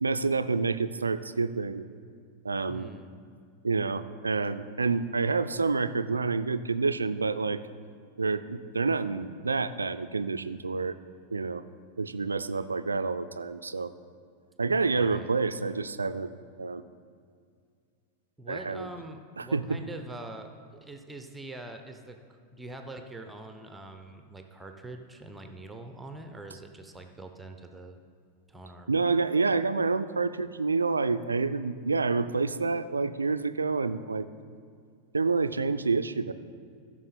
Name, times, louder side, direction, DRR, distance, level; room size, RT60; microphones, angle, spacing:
voice 1, 0.0-1.8 2.4-2.9 3.6-7.6 8.2-11.0 11.3-11.6 12.0-13.9 14.6-16.3 16.6-16.8 18.5-18.9 19.4-19.6 28.9-34.3 35.1-36.3, right 4 dB, 75° right, 12 dB, 0.3 m, -28 dB
voice 2, 2.7-3.1 15.0-15.3 18.4-28.0 28.5-28.9, right 2 dB, 10° right, 6 dB, 0.7 m, -44 dB
14.5 x 6.2 x 4.2 m, 2.2 s
figure-of-eight pair, 90°, 0 cm